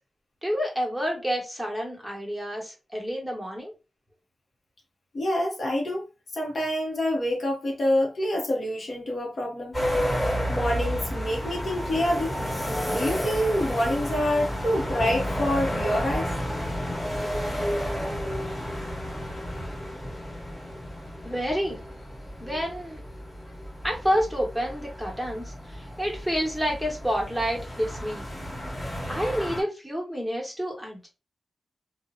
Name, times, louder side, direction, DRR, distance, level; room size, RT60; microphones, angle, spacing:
voice 1, 0.4-3.7 21.2-21.8 22.4-23.0 23.8-28.2 29.1-31.1, equal, ahead, 1.0 m, -29 dB
voice 2, 5.1-6.0 6.3-9.7 10.5-12.4 12.9-16.3, equal, 60° left, 0.7 m, -26 dB
sound 1, 9.7-29.6, equal, 25° left, 1.2 m, -31 dB
2.7 x 2.0 x 2.4 m
cardioid pair, 75°, 0 cm